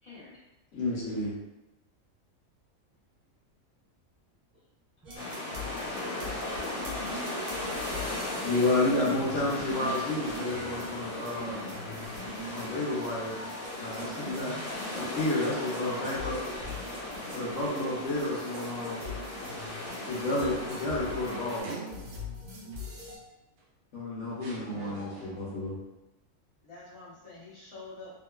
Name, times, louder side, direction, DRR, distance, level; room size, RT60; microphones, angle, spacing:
voice 1, 0.0-0.4 26.6-28.1, left 3 dB, 25° left, -9 dB, 0.8 m, -47 dB
voice 2, 0.7-1.3 8.4-11.6 12.5-13.3 13.7-14.6 14.9-16.4 17.3-19.0 20.1-21.7 23.9-25.8, left 2 dB, 65° left, -6 dB, 1.1 m, -31 dB
sound 1, 5.1-23.2, equal, 75° right, 1.1 m, -42 dB
sound 2, 5.2-21.6, left 2 dB, 85° left, 1.2 m, -37 dB
sound 3, 9.3-12.2 12.7-12.8 18.1-22.5 23.6-23.7 24.4-25.6, right 3 dB, 60° right, 0.6 m, -46 dB
voice 3, 11.8-12.1 13.0-13.1, left 2 dB, 20° right, -10 dB, 0.3 m, -56 dB
2.9 x 2.2 x 2.2 m, 0.95 s
omnidirectional pair, 1.4 m